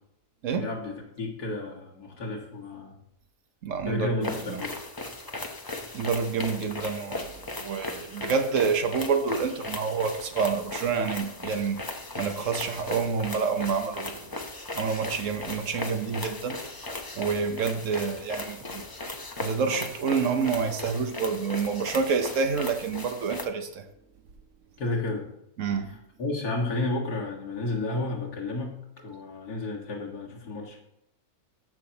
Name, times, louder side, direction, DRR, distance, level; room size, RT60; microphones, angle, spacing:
voice 1, 0.6-3.0 3.8-4.8 24.8-25.3 25.8-30.8, left 2 dB, 80° left, -1 dB, 2.3 m, -32 dB
voice 2, 3.6-4.6 5.9-7.3 7.6-11.8 12.2-14.3 14.7-16.6 17.2-18.9 19.4-23.8 25.6-25.9, right 5 dB, 60° right, 7 dB, 1.2 m, -28 dB
sound 1, 4.2-23.5, left 2 dB, 25° left, 0.5 m, -37 dB
14.0 x 5.9 x 2.9 m, 0.80 s
omnidirectional pair, 1.6 m